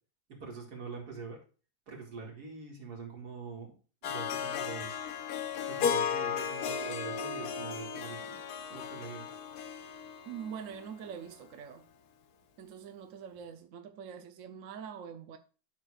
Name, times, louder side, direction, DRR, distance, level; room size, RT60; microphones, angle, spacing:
voice 1, 0.3-1.4 1.9-3.7 4.0-5.0 5.6-8.4 8.7-9.3, right 4 dB, 85° right, 2.7 m, -44 dB
Harp, 4.0-11.2, left 7 dB, 80° left, 1.3 m, -35 dB
voice 2, 10.3-11.8 12.6-15.4, right 7 dB, 65° right, 1.0 m, -44 dB
11.5 x 6.4 x 2.4 m
omnidirectional pair, 1.7 m